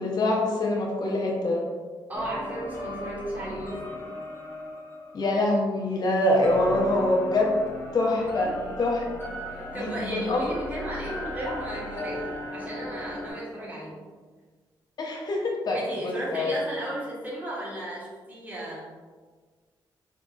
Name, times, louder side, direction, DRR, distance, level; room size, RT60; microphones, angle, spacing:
voice 1, 0.0-1.6 5.1-7.5 7.9-8.5 8.8-9.0 9.7-10.4 12.0-12.1 15.0-16.5, left 2 dB, 50° left, -1 dB, 0.6 m, -25 dB
sound 1, 2.1-6.1 6.4-13.3, left 1 dB, 25° left, 0.9 m, -38 dB
voice 2, 2.1-4.0 8.2-8.5 9.5-14.0 15.7-18.9, right 1 dB, 20° right, -7 dB, 1.3 m, -35 dB
3.8 x 2.7 x 2.3 m, 1.5 s
cardioid pair, 80°, 9 cm